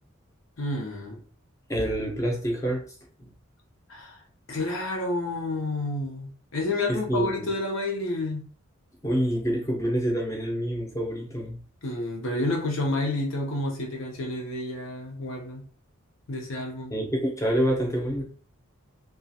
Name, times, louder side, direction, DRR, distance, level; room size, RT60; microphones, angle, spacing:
voice 1, 0.6-1.2 3.9-4.2 4.5-8.5 11.8-15.6 16.3-16.9, left 2 dB, 75° left, 0.8 m, -30 dB
voice 2, 1.7-2.8 6.9-7.5 9.0-11.6 16.9-18.2, equal, 15° left, 0.5 m, -27 dB
2.3 x 2.3 x 2.7 m
head